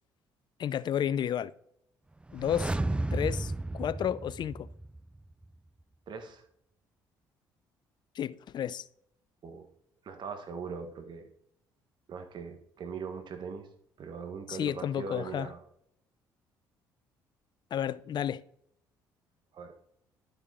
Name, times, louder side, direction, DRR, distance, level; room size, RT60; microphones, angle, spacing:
voice 1, 0.6-1.5 2.3-2.8 3.1-4.7 8.2-8.8 14.5-15.5 17.7-18.4, left 9 dB, 50° left, 0.5 m, -32 dB
sound 1, 2.2-5.2 5.4-5.5, right 2 dB, 10° right, 0.4 m, -33 dB
voice 2, 6.1-6.4 9.4-9.7 10.0-11.3 12.1-13.7 14.0-15.6 19.5-19.7, right 5 dB, 55° right, 1.4 m, -40 dB
11.5 x 5.0 x 4.2 m
supercardioid pair, 60°, 9 cm